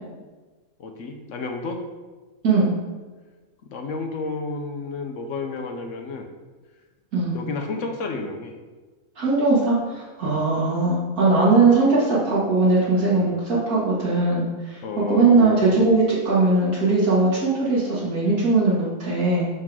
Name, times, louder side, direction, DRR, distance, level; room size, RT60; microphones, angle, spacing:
voice 1, 0.8-1.8 3.7-6.3 7.3-8.5 10.2-10.4 13.2-13.3 14.8-15.6, left 3 dB, 60° left, 4 dB, 1.0 m, -31 dB
voice 2, 9.2-14.8 15.1-19.5, right 3 dB, 70° right, -8 dB, 2.0 m, -20 dB
6.5 x 3.8 x 6.0 m, 1.3 s
omnidirectional pair, 1.6 m